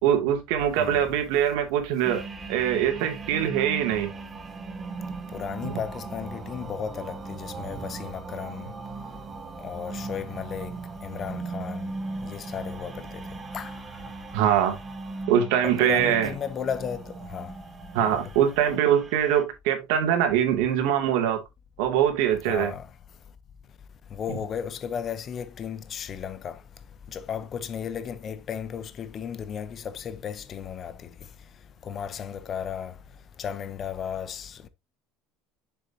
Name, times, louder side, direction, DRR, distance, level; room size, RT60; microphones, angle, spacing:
voice 1, 0.0-2.2 2.5-4.1 5.6-5.7 14.3-14.8 15.3-16.3 17.9-21.4 21.8-22.7, right 10 dB, 75° right, 2.2 m, -23 dB
voice 2, 0.8-1.1 5.3-8.7 9.6-10.7 11.0-11.9 12.2-13.2 13.5-13.8 15.6-17.5 18.1-18.3 22.5-22.9 24.1-26.6 27.1-31.0 31.9-32.9 33.4-34.7, left 8 dB, 25° left, 0.6 m, -34 dB
sound 1, 2.0-19.4, right 3 dB, 20° right, 0.8 m, -38 dB
7.3 x 6.8 x 2.7 m
cardioid pair, 175°, 0 cm